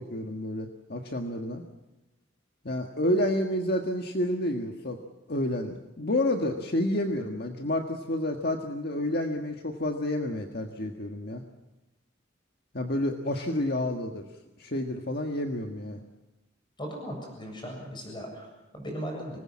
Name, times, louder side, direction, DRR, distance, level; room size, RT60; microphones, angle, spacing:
voice 1, 0.0-1.6 2.6-5.0 5.3-11.4 12.7-14.3 14.6-16.0, left 1 dB, 55° left, 4 dB, 1.6 m, -29 dB
voice 2, 16.8-19.4, equal, 25° left, 1 dB, 7.3 m, -38 dB
25.5 x 20.5 x 7.5 m, 1.0 s
head